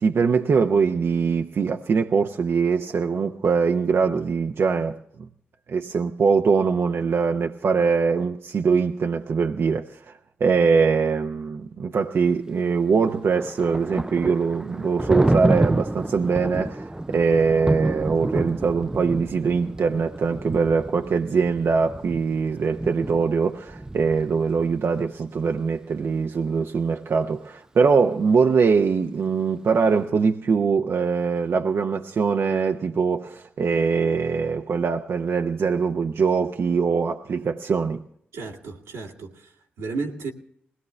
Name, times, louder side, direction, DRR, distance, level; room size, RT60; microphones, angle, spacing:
voice 1, 0.0-5.3 5.7-38.0, right 5 dB, 60° right, 0.8 m, -22 dB
Thunder, 12.9-24.7, right 1 dB, 15° right, 0.5 m, -29 dB
voice 2, 38.3-40.3, right 4 dB, 85° right, 1.9 m, -33 dB
20.5 x 17.5 x 3.2 m
supercardioid pair, 40°, 5 cm